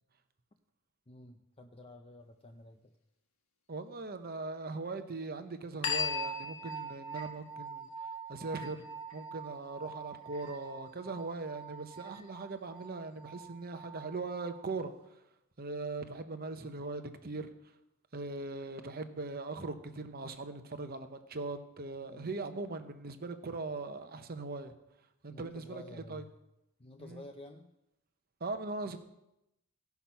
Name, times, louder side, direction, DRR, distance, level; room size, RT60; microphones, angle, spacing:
voice 1, 1.1-2.9 22.0-22.3 25.3-26.3 26.8-27.7, left 2 dB, 25° left, 4 dB, 0.6 m, -51 dB
voice 2, 3.7-7.9 8.3-8.8 9.1-14.9 15.6-17.5 18.1-24.7 25.2-26.2 27.0-27.2 28.4-29.0, right 3 dB, 40° right, 9 dB, 0.8 m, -40 dB
sound 1, 5.8-14.9, left 2 dB, 70° left, 1.6 m, -41 dB
16.5 x 5.9 x 5.7 m, 0.88 s
head